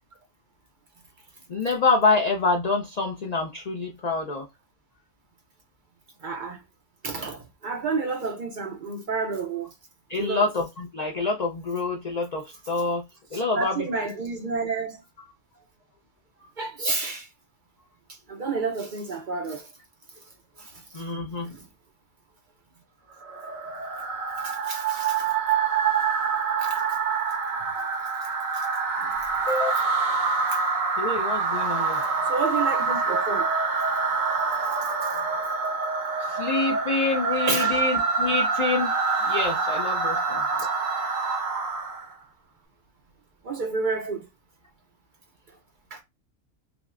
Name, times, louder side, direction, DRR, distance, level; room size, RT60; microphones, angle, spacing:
voice 1, 1.5-4.4 10.1-13.0 13.3-13.9 20.9-21.5 29.5-29.7 31.0-32.0 36.2-40.4, left 3 dB, 50° left, 0.5 m, -26 dB
voice 2, 6.2-6.6 7.0-9.7 10.1-10.5 13.3-15.0 16.6-17.3 18.1-19.7 20.6-21.0 21.4-21.7 24.4-25.3 26.6-26.8 28.2-28.7 30.5-30.6 32.2-33.5 35.0-35.2 37.5-37.8 40.6-40.7 43.4-44.3 45.9-46.0, right 4 dB, 55° right, 0.5 m, -30 dB
sound 1, 23.2-42.1, right 5 dB, 85° right, 1.4 m, -26 dB
Bowed string instrument, 37.3-41.5, equal, 70° left, 2.1 m, -43 dB
5.9 x 2.1 x 2.4 m
omnidirectional pair, 1.3 m